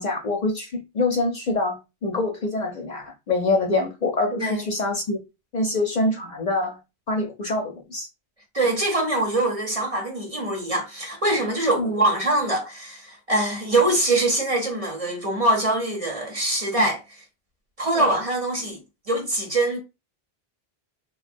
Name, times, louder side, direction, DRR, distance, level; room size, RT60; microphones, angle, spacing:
voice 1, 0.0-5.2 5.5-6.8 7.1-8.1 11.8-11.9 18.0-18.1, left 2 dB, 55° left, 0.6 m, -25 dB
voice 2, 4.3-4.6 8.5-17.2 17.8-18.8 19.1-19.8, right 2 dB, 40° right, 0.7 m, -23 dB
3.2 x 2.1 x 2.5 m
omnidirectional pair, 1.0 m